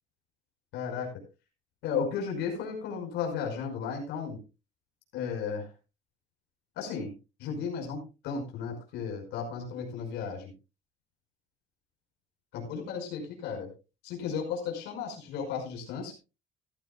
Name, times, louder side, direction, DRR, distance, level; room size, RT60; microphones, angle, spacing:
voice 1, 0.7-1.1 1.8-4.4 5.1-5.7 6.8-7.1 7.4-10.5 12.5-13.7 14.0-16.1, left 6 dB, 85° left, 1 dB, 5.3 m, -34 dB
15.5 x 14.5 x 2.3 m, 0.29 s
cardioid pair, 110°, 17 cm